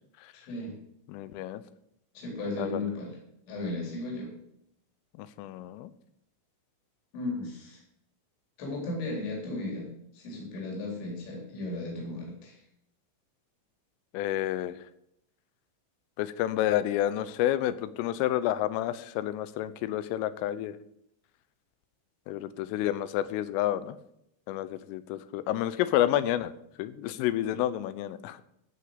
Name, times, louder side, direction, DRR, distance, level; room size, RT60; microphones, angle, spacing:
voice 1, 0.3-0.8 2.1-3.2 3.5-4.3 7.1-7.8 8.6-9.9 10.1-12.6, left 2 dB, 65° left, -2 dB, 6.0 m, -35 dB
voice 2, 1.1-1.6 2.6-2.8 5.2-5.9 14.1-14.7 16.2-20.8 22.3-24.0 24.5-26.5 26.8-28.4, left 13 dB, 85° left, 14 dB, 3.3 m, -29 dB
14.5 x 6.3 x 7.8 m, 0.76 s
omnidirectional pair, 5.7 m